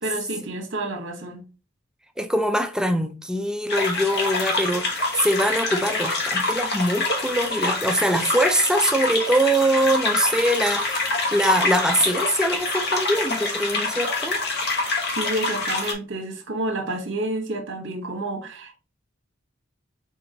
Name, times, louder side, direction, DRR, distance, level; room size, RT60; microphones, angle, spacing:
voice 1, 0.0-1.4 15.1-18.8, right 2 dB, 60° right, 1.1 m, -29 dB
voice 2, 2.2-14.4, right 1 dB, 5° right, 0.3 m, -23 dB
sound 1, 3.7-15.9, left 2 dB, 55° left, 1.1 m, -26 dB
4.2 x 3.8 x 2.8 m
head